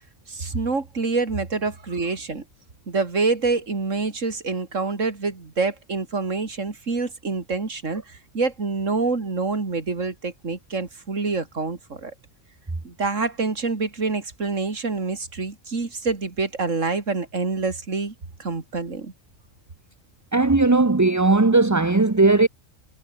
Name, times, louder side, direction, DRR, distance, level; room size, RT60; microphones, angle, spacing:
voice 1, 0.3-2.4 2.9-12.1 12.8-18.1 18.4-19.1, right 4 dB, 70° right, 3.2 m, -26 dB
voice 2, 20.3-22.5, right 3 dB, 15° right, 0.8 m, -17 dB
omnidirectional pair, 1.4 m